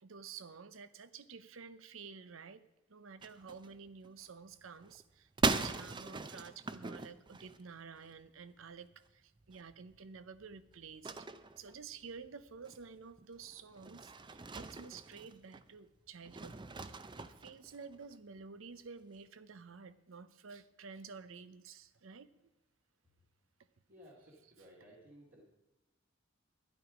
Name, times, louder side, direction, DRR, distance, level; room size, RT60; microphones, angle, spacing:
voice 1, 0.0-11.3 11.6-22.3, right 5 dB, 75° right, 14 dB, 0.7 m, -51 dB
sound 1, 3.2-4.2 4.5-8.1 8.6-8.8 9.1-9.2 9.4-15.7 16.2-18.1, right 3 dB, 25° right, 0.5 m, -40 dB
voice 2, 23.9-25.4, equal, 50° right, -5 dB, 2.3 m, -58 dB
12.5 x 11.0 x 5.0 m, 0.98 s
head